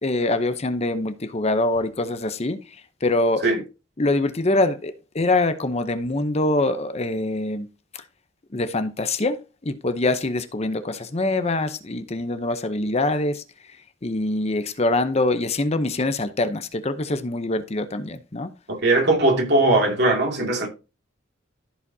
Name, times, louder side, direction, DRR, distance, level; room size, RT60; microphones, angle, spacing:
voice 1, 0.0-2.6 3.0-3.5 4.0-7.7 8.5-13.4 14.0-18.5, left 2 dB, 35° left, 0.7 m, -24 dB
voice 2, 18.7-20.7, right 2 dB, 60° right, 2.6 m, -19 dB
14.5 x 5.0 x 2.8 m
head